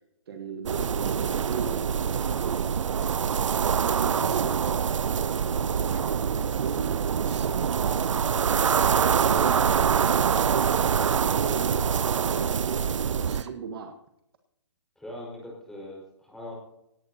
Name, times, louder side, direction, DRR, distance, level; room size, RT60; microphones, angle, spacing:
voice 1, 0.3-3.1 3.5-4.8 5.4-8.5 9.0-13.9, right 6 dB, 50° right, 5 dB, 1.5 m, -38 dB
sound 1, 0.7-13.4, right 7 dB, 85° right, 0.5 m, -25 dB
Drill, 4.2-4.5 7.3-7.6 10.3-10.6 13.3-13.5, right 7 dB, 70° right, 1.4 m, -47 dB
voice 2, 9.2-9.7 15.0-16.5, left 1 dB, 5° left, -4 dB, 5.0 m, -41 dB
18.0 x 17.5 x 2.8 m, 0.85 s
hypercardioid pair, 155°, 16 cm